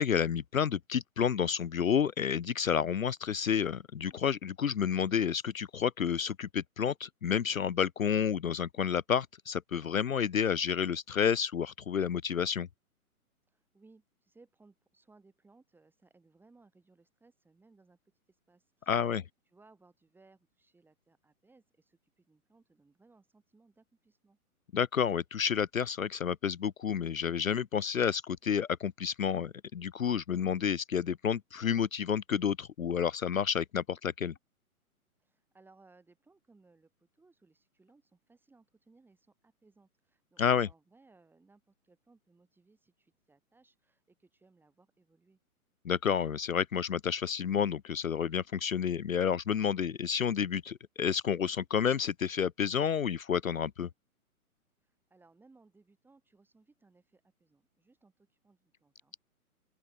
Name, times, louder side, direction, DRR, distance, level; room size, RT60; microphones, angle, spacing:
voice 1, 0.0-12.7 18.9-19.2 24.7-34.3 40.4-40.7 45.8-53.9, left 7 dB, 65° left, 0.7 m, -30 dB
voice 2, 13.5-18.0 18.3-19.0 19.5-24.4 35.2-45.4 54.8-59.2, right 3 dB, 5° right, 5.8 m, -64 dB
open air
figure-of-eight pair, 125°, 44 cm